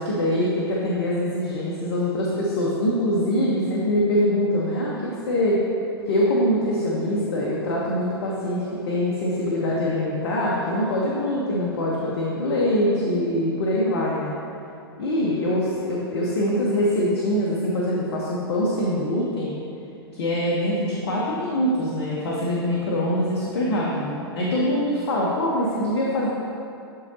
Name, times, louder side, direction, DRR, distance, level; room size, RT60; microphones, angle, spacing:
voice 1, 0.0-5.6 6.1-14.3 15.0-19.5 20.1-26.3, left 1 dB, 60° left, -5 dB, 1.0 m, -24 dB
10.5 x 3.8 x 2.8 m, 2.6 s
figure-of-eight pair, 100°, 14 cm